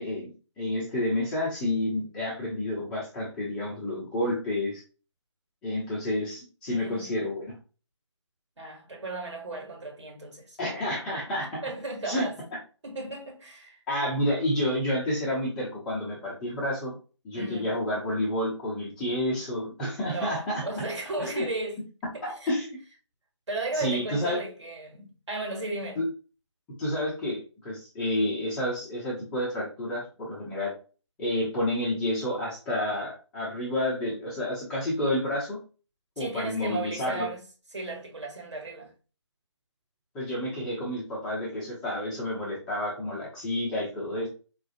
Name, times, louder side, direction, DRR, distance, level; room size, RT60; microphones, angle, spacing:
voice 1, 0.0-4.8 5.6-7.6 10.6-11.6 12.0-12.2 13.9-17.0 17.2-20.6 21.2-21.4 22.2-22.8 23.7-24.4 26.0-26.1 26.8-30.7 31.2-35.6 36.2-37.3 40.1-44.3, left 1 dB, 5° left, 0.3 m, -30 dB
voice 2, 6.7-7.2 8.6-10.6 11.6-12.4 12.8-13.8 17.3-17.8 20.0-21.8 22.1-22.5 23.5-26.0 36.2-37.4 37.7-38.9, right 2 dB, 65° right, 1.6 m, -35 dB
4.2 x 2.4 x 2.3 m
figure-of-eight pair, 145°, 16 cm